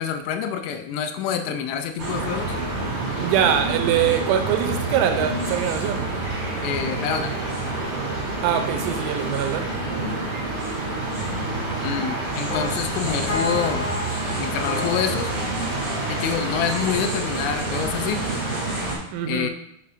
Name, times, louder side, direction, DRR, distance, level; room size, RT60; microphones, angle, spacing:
voice 1, 0.0-2.6 6.6-7.3 11.8-13.9 14.4-15.3 16.1-18.2 19.3-19.5, left 8 dB, 85° left, 7 dB, 3.0 m, -27 dB
sound 1, 2.0-18.9, right 2 dB, 35° right, 2.6 m, -28 dB
voice 2, 3.2-6.1 8.4-9.7 19.1-19.5, right 9 dB, 85° right, 7 dB, 3.0 m, -23 dB
sound 2, 12.5-17.0 17.3-18.4, left 3 dB, 65° left, 2.1 m, -33 dB
7.7 x 7.2 x 2.5 m, 0.76 s
omnidirectional pair, 5.5 m